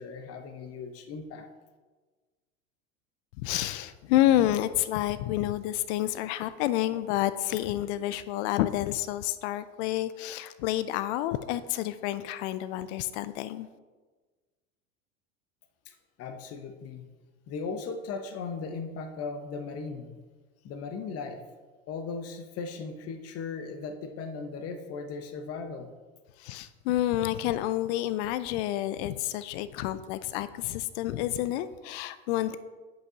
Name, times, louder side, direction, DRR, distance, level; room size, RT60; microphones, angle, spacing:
voice 1, 0.0-1.5 15.9-17.1 17.5-20.1 20.6-21.4 21.9-25.9, left 4 dB, 35° left, 7 dB, 0.8 m, -37 dB
voice 2, 3.4-13.7 26.4-32.6, left 14 dB, 60° left, 14 dB, 0.5 m, -29 dB
10.5 x 5.4 x 2.8 m, 1.4 s
hypercardioid pair, 85°, 39 cm